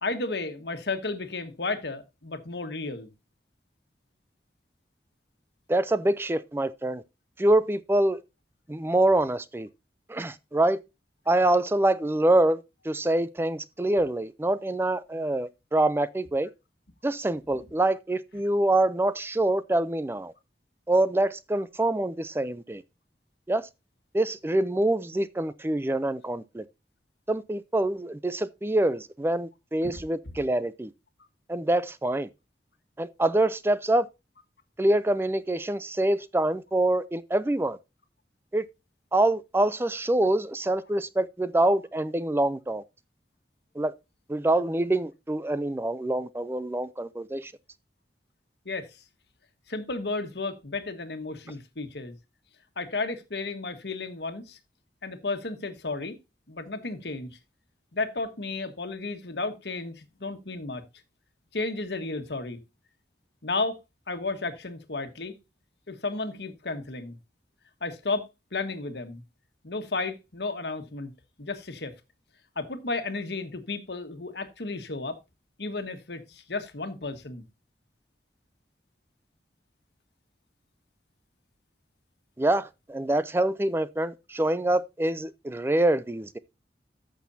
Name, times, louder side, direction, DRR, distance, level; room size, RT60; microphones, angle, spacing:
voice 1, 0.0-3.1 29.8-30.0 48.6-49.0 49.7-52.2 52.8-54.6 55.0-56.2 56.5-57.3 57.9-60.8 61.5-62.6 63.4-63.8 64.1-65.4 65.9-67.2 67.8-69.2 69.6-71.1 71.4-71.9 72.5-75.2 75.6-77.4, left 3 dB, 75° left, 1.4 m, -33 dB
voice 2, 5.7-7.0 7.4-8.2 8.7-9.7 10.1-10.8 11.3-16.5 17.0-20.3 20.9-22.8 23.5-23.7 24.1-26.6 27.3-30.9 31.5-32.3 33.0-34.1 34.8-37.8 38.5-38.7 39.1-42.8 43.8-43.9 44.3-47.5 82.4-86.4, right 1 dB, 15° right, 0.4 m, -25 dB
14.0 x 6.2 x 2.7 m
head